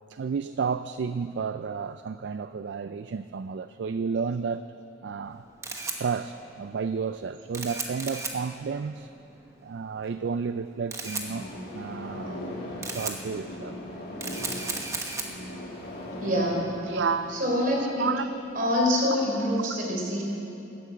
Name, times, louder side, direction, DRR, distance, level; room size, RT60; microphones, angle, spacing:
voice 1, 0.1-4.7 5.0-5.4 6.0-9.1 9.6-11.5 11.7-12.4 12.8-13.8 16.9-17.4 18.0-18.3 19.4-19.5, right 5 dB, 60° right, 12 dB, 0.3 m, -31 dB
Camera, 5.2-18.6, right 3 dB, 15° right, 1.1 m, -38 dB
sound 1, 11.2-17.6, left 1 dB, 50° left, 2.4 m, -39 dB
voice 2, 16.2-16.9 17.3-18.1 18.6-20.2, left 1 dB, 45° right, -2 dB, 3.6 m, -26 dB
14.0 x 11.5 x 8.5 m, 3.0 s
head